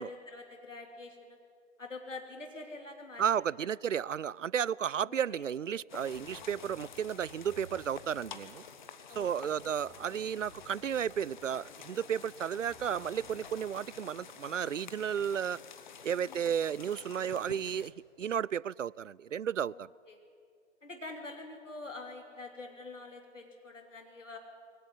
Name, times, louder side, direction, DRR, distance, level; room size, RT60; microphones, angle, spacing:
voice 1, 0.0-1.4 1.8-3.7 5.0-5.5 9.1-9.6 16.2-16.5 19.7-20.2 20.8-24.4, left 3 dB, 80° left, 3 dB, 3.2 m, -46 dB
voice 2, 3.2-8.6 9.2-15.6 16.0-19.9, right 8 dB, 85° right, 26 dB, 0.5 m, -33 dB
sound 1, 5.9-17.9, left 7 dB, 40° left, 1.2 m, -50 dB
sound 2, 6.0-13.7, right 1 dB, 15° left, 6.2 m, -57 dB
21.5 x 17.5 x 10.0 m, 2.3 s
figure-of-eight pair, 140°, 37 cm